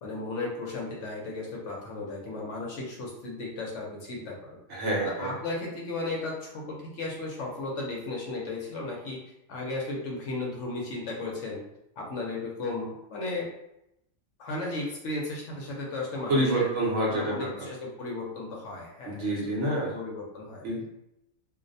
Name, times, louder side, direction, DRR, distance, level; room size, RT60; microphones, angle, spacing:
voice 1, 0.0-4.6 5.0-9.2 9.5-11.6 12.0-13.5 14.4-16.8 17.1-20.6, left 2 dB, 65° left, -2 dB, 0.8 m, -35 dB
voice 2, 4.7-5.4 16.3-17.7 19.1-19.9 20.6-20.9, right 1 dB, 65° right, -3 dB, 0.9 m, -27 dB
2.5 x 2.0 x 2.5 m, 0.83 s
omnidirectional pair, 1.4 m